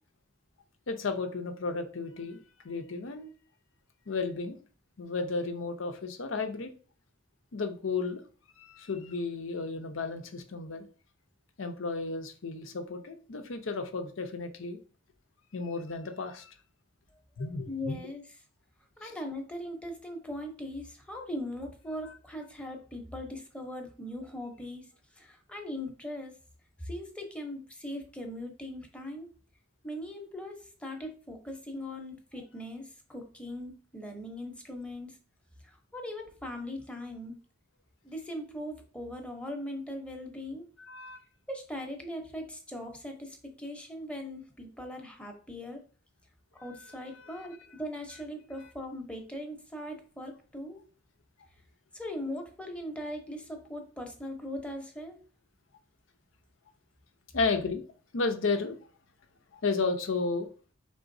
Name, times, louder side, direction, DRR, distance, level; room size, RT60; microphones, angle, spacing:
voice 1, 0.9-3.3 4.1-4.6 5.0-6.7 7.5-8.2 8.6-10.9 11.6-14.8 15.5-16.5 17.4-18.0 19.0-19.1 22.0-22.1 40.9-41.2 57.3-57.8 58.1-58.8 59.5-60.5, left 4 dB, 80° left, 7 dB, 0.7 m, -33 dB
voice 2, 17.7-18.3 19.0-26.3 26.8-29.3 29.8-35.2 35.6-37.4 38.0-40.7 41.5-45.8 46.6-50.8 51.9-55.2, left 1 dB, 5° left, 3 dB, 0.8 m, -40 dB
4.8 x 3.8 x 2.6 m, 0.39 s
head